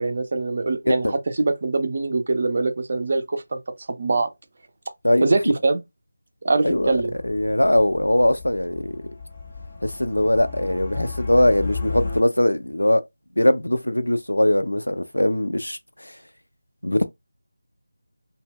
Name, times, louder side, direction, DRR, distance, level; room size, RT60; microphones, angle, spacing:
voice 1, 0.0-3.6 3.9-4.3 5.2-5.8 6.4-7.1, right 3 dB, 40° right, 0.4 m, -23 dB
sound 1, 6.7-12.2, left 4 dB, 30° left, 0.6 m, -34 dB
voice 2, 7.2-9.0 9.8-13.0 13.4-15.8 16.0-16.1 16.8-17.0, left 1 dB, 80° left, 0.4 m, -21 dB
2.0 x 2.0 x 3.4 m
figure-of-eight pair, 165°, 0 cm